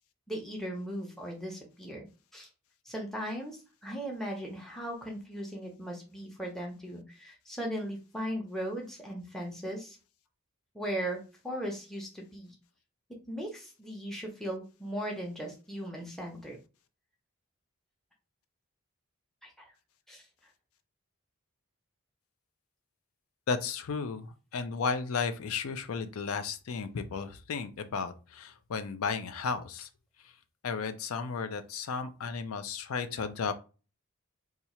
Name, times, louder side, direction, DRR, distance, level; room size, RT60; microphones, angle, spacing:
voice 1, 0.3-2.1 2.3-2.5 2.8-10.0 10.7-12.6 13.3-16.6 19.4-19.6 20.1-20.2, equal, ahead, 0 dB, 0.6 m, -38 dB
voice 2, 23.5-29.9 30.6-33.5, left 5 dB, 75° left, 10 dB, 0.4 m, -34 dB
2.8 x 2.4 x 4.2 m, 0.33 s
head